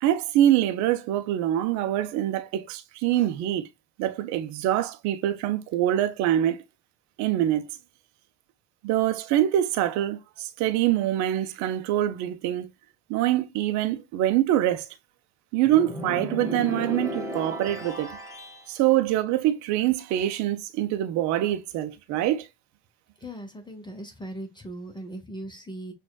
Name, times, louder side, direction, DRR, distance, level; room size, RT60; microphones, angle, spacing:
voice 1, 0.0-3.7 4.0-6.6 7.2-7.7 8.8-12.7 13.1-14.9 15.5-18.2 18.7-22.5, right 12 dB, 60° right, 0.7 m, -24 dB
sound 1, 15.6-18.7, equal, 10° right, 1.4 m, -34 dB
voice 2, 23.2-25.9, right 1 dB, 15° left, 1.0 m, -39 dB
6.0 x 2.5 x 2.3 m
hypercardioid pair, 65°, 32 cm